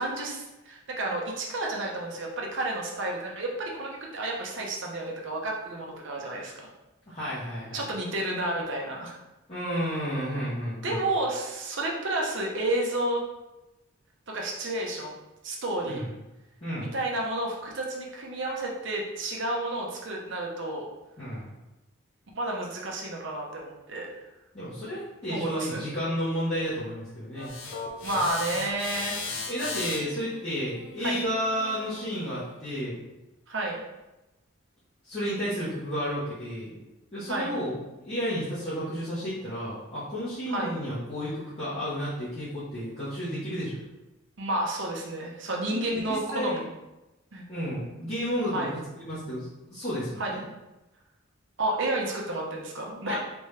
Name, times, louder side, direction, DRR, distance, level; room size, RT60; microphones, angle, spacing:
voice 1, 0.0-6.5 7.7-9.2 10.8-13.2 14.3-15.1 15.4-16.0 16.8-20.8 22.4-24.1 25.3-25.8 28.0-29.2 31.0-31.2 33.5-33.8 37.3-37.6 40.5-40.7 44.4-46.6 47.3-47.5 48.5-48.7 50.2-50.4 51.6-53.2, right 1 dB, 55° right, -1 dB, 0.7 m, -31 dB
voice 2, 7.1-7.8 9.5-11.0 15.8-16.1 16.6-16.9 21.2-21.5 24.5-27.5 29.5-33.0 35.0-36.9 37.1-37.8 38.0-43.8 45.7-46.6 47.5-48.7 49.0-50.4 53.0-53.2, equal, 30° left, -12 dB, 1.0 m, -32 dB
sound 1, 27.3-32.5, left 4 dB, 55° left, 0.6 m, -37 dB
3.5 x 3.0 x 3.2 m, 1.0 s
head